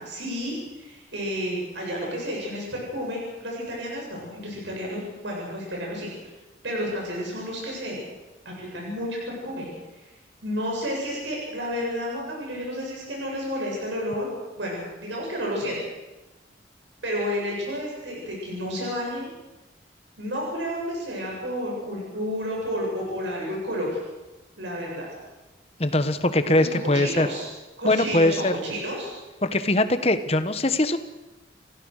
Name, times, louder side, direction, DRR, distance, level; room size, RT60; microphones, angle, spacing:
voice 1, 0.0-6.1 6.6-8.0 8.4-9.2 9.4-9.7 10.4-14.3 14.6-15.8 17.0-19.3 20.2-24.0 24.6-25.1 26.4-27.4 27.8-29.1, equal, 85° right, -2 dB, 7.9 m, -31 dB
voice 2, 25.8-27.3 27.8-28.5 29.4-31.0, left 1 dB, 35° left, 10 dB, 1.2 m, -21 dB
30.0 x 16.0 x 6.5 m, 1.1 s
head